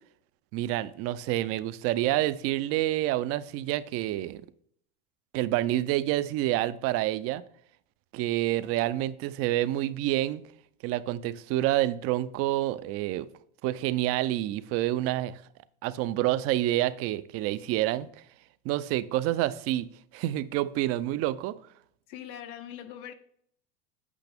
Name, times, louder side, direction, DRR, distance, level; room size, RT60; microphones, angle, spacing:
voice 1, 0.5-4.4 5.3-7.4 8.1-10.4 10.8-13.3 13.6-15.4 15.8-18.1 18.6-19.9 20.1-21.6, right 15 dB, 50° right, 0.5 m, -28 dB
voice 2, 22.1-23.1, left 10 dB, 65° left, 0.9 m, -41 dB
8.2 x 5.6 x 3.5 m
supercardioid pair, 120°, 30 cm